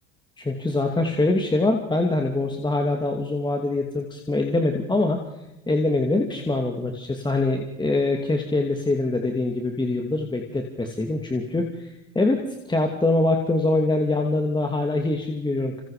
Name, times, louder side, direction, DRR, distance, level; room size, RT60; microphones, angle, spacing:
voice 1, 0.4-5.2 5.7-11.9 12.1-15.8, left 2 dB, 10° left, 2 dB, 2.7 m, -24 dB
27.5 x 27.0 x 5.1 m, 0.99 s
hypercardioid pair, 85°, 38 cm